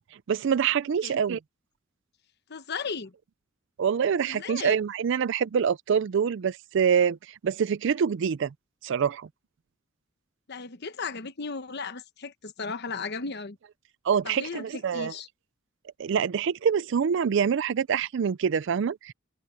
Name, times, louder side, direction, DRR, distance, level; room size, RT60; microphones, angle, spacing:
voice 1, 0.3-1.4 3.8-8.5 8.8-9.3 14.0-15.1 16.0-19.1, right 7 dB, 65° right, 0.4 m, -25 dB
voice 2, 2.5-3.1 4.3-4.8 10.5-13.6 14.2-15.3, left 4 dB, 55° left, 1.0 m, -35 dB
head